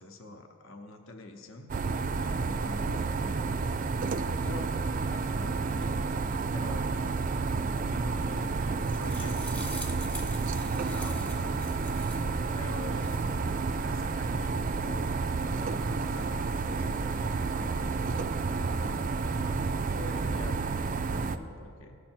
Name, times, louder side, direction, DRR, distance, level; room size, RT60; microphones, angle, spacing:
voice 1, 0.0-3.9 4.4-4.7 5.1-6.0 6.5-7.2 7.9-9.4 10.7-11.7 12.5-15.1 15.5-17.3 17.6-19.1 19.9-22.0, left 2 dB, 60° left, 5 dB, 0.8 m, -45 dB
sound 1, 1.7-21.4, right 4 dB, 35° right, 0.3 m, -30 dB
sound 2, 8.5-12.3 12.8-13.3, left 1 dB, 5° left, 0.8 m, -44 dB
17.0 x 6.5 x 4.5 m, 2.6 s
head